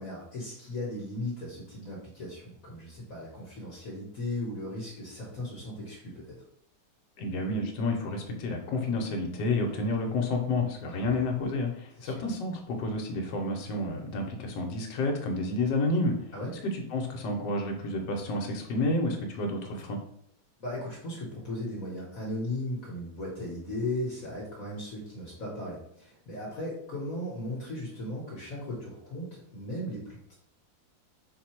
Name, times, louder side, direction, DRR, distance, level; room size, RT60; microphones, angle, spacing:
voice 1, 0.0-6.4 10.8-11.3 12.0-12.2 16.3-16.5 20.6-30.3, left 1 dB, 50° left, -5 dB, 1.4 m, -37 dB
voice 2, 7.2-16.1 16.5-20.0, left 2 dB, 70° left, 2 dB, 1.4 m, -30 dB
4.6 x 2.2 x 4.3 m, 0.70 s
omnidirectional pair, 2.1 m